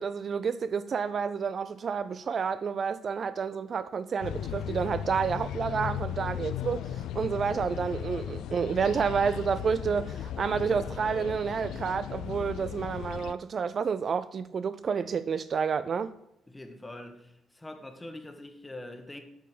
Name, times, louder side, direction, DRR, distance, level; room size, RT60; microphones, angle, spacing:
voice 1, 0.0-16.1, right 6 dB, 50° right, 0.4 m, -30 dB
sound 1, 4.2-13.3, left 10 dB, 80° left, 0.3 m, -36 dB
voice 2, 16.5-19.2, left 1 dB, 15° left, 1.3 m, -44 dB
8.7 x 5.4 x 6.7 m
cardioid pair, 90°, 0 cm